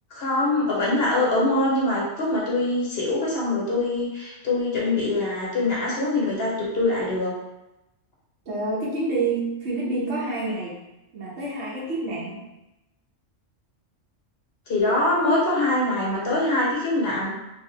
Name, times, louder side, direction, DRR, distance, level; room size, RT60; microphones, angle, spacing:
voice 1, 0.1-7.3 14.7-17.3, left 2 dB, 50° left, -4 dB, 1.3 m, -23 dB
voice 2, 8.5-10.8 11.1-12.4, right 2 dB, 60° right, -6 dB, 1.1 m, -28 dB
3.7 x 2.6 x 3.2 m, 0.95 s
omnidirectional pair, 1.3 m